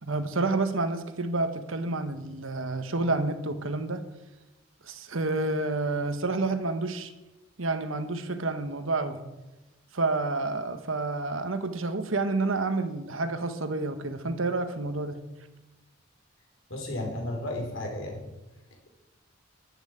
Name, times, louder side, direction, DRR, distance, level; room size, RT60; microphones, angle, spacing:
voice 1, 0.0-4.0 4.8-7.1 7.6-9.2 9.9-15.2, right 3 dB, 80° right, 9 dB, 1.5 m, -29 dB
voice 2, 16.7-18.2, left 1 dB, 75° left, 1 dB, 4.5 m, -33 dB
12.5 x 9.1 x 9.0 m, 1.1 s
head